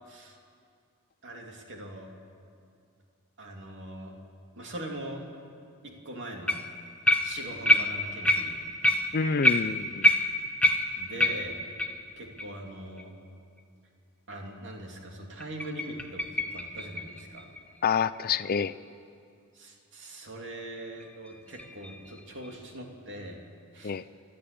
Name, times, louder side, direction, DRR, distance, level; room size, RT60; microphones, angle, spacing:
voice 1, 1.2-2.1 3.4-4.1 4.6-5.2 5.8-6.6 7.2-8.6 11.0-11.6 12.2-13.1 14.3-17.5 19.5-23.4 23.7-23.9, right 1 dB, 55° right, 1 dB, 3.0 m, -41 dB
sound 1, 6.5-6.7 7.1-12.0 12.4-12.5 13.0-13.1 13.6-13.7 15.4-18.2 21.0-22.5, left 1 dB, 5° left, 1.2 m, -27 dB
voice 2, 9.1-10.1 17.8-18.7 23.8-24.0, left 6 dB, 45° left, 13 dB, 0.4 m, -27 dB
28.5 x 12.0 x 8.5 m, 2.3 s
head